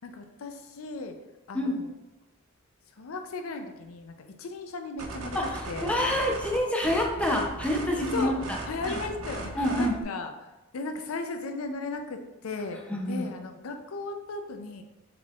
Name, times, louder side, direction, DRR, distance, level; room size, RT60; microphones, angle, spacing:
voice 1, 0.0-1.2 1.5-1.9 3.0-5.4 5.7-6.2 7.9-12.8 13.1-14.8, left 3 dB, 80° left, 6 dB, 0.5 m, -36 dB
sound 1, 5.0-10.0, right 2 dB, 85° right, 0.6 m, -38 dB
voice 2, 5.3-8.3 8.8-9.0 9.5-10.0 12.9-13.3, left 1 dB, 5° left, -1 dB, 0.5 m, -27 dB
4.5 x 4.0 x 2.3 m, 1.1 s
head